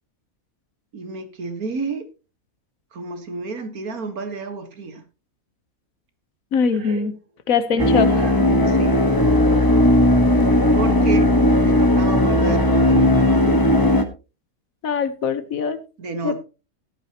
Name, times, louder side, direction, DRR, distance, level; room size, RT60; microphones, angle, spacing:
voice 1, 0.9-2.1 2.9-5.0 6.8-7.1 7.8-8.3 8.7-9.0 10.7-11.3 11.6-13.6 16.0-16.4, right 4 dB, 75° right, 8 dB, 2.0 m, -31 dB
voice 2, 6.5-7.1 7.5-8.1 10.2-10.5 14.8-15.8 16.2-16.4, left 6 dB, 70° left, 12 dB, 1.5 m, -22 dB
sound 1, 7.8-14.0, left 1 dB, 15° left, 1.1 m, -16 dB
13.5 x 11.5 x 2.9 m, 0.31 s
omnidirectional pair, 1.5 m